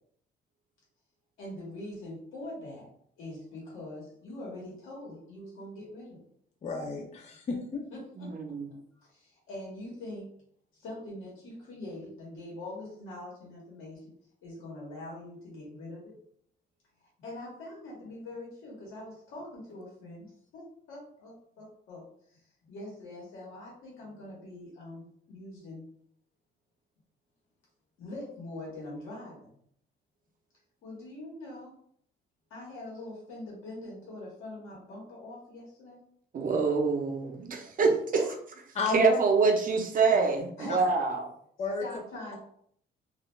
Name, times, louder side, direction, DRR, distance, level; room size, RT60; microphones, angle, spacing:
voice 1, 1.4-2.9 3.2-6.2 7.9-8.3 8.7-8.8 9.1-10.3 10.7-14.0 14.4-16.1 17.2-20.3 20.5-22.0 22.3-25.8 28.0-29.5 30.8-31.7 32.5-36.0 37.9-38.3 40.6-40.9 41.8-42.4, left 1 dB, 85° left, -4 dB, 1.0 m, -43 dB
voice 2, 6.6-7.9 38.7-39.2 40.7-40.8 41.6-41.8, left 3 dB, 35° left, 1 dB, 0.4 m, -31 dB
voice 3, 8.2-8.7 36.3-38.2 38.9-41.3, right 4 dB, 45° right, 3 dB, 0.6 m, -26 dB
2.3 x 2.2 x 3.0 m, 0.65 s
cardioid pair, 90°, 20 cm